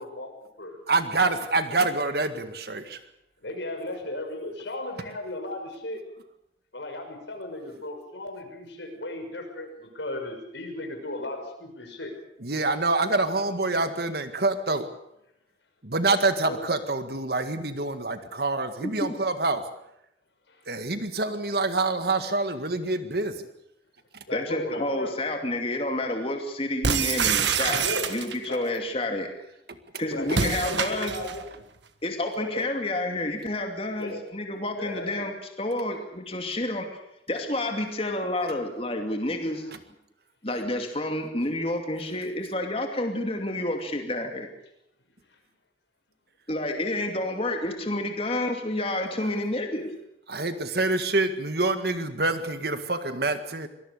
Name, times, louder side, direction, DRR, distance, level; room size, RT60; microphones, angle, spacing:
voice 1, 0.0-0.8 3.4-6.0 6.7-12.1 16.4-16.6 24.3-25.1 27.8-28.1 28.5-28.7 30.0-31.4 32.3-32.7 34.0-34.2 34.7-35.3, left 1 dB, 75° left, 4 dB, 5.9 m, -36 dB
voice 2, 0.9-3.0 12.4-14.9 15.8-19.6 20.7-23.5 50.3-53.7, right 3 dB, 55° right, 9 dB, 1.8 m, -26 dB
voice 3, 18.8-19.1 24.3-29.3 30.0-31.1 32.0-36.9 37.3-39.7 40.4-44.5 46.5-49.9, left 1 dB, 30° left, 4 dB, 2.6 m, -29 dB
sound 1, 26.8-28.6 30.3-31.4, right 6 dB, 75° right, 1.6 m, -26 dB
24.5 x 19.5 x 6.7 m, 0.80 s
head